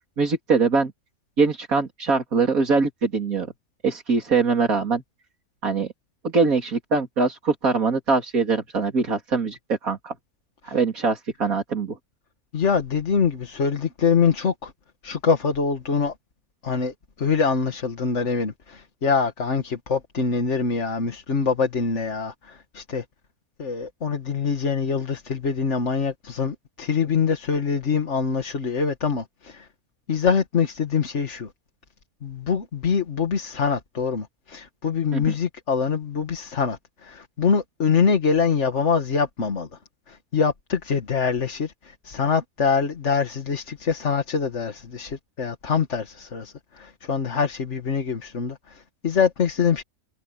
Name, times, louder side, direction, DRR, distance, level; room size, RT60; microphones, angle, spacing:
voice 1, 0.2-0.9 1.4-3.5 3.8-5.0 5.6-5.9 6.2-10.1 10.6-12.0 35.1-35.3, right 4 dB, 70° right, 3.6 m, -22 dB
voice 2, 12.5-14.7 15.0-16.1 16.6-23.0 23.6-29.7 30.1-31.5 32.2-39.7 40.1-49.8, left 6 dB, 55° left, 1.9 m, -24 dB
omnidirectional pair, 1.5 m